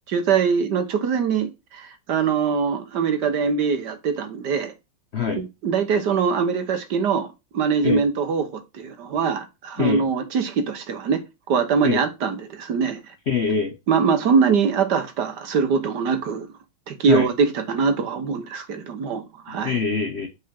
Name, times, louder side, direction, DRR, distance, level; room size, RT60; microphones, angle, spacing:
voice 1, 0.1-4.7 5.3-11.2 11.5-13.0 13.9-16.5 16.9-19.8, right 5 dB, 60° right, 1.5 m, -23 dB
voice 2, 5.1-5.4 7.8-8.0 9.8-10.1 11.8-12.0 13.3-13.8 17.1-17.3 19.5-20.3, left 5 dB, 70° left, 0.6 m, -24 dB
5.5 x 4.8 x 5.7 m
omnidirectional pair, 2.3 m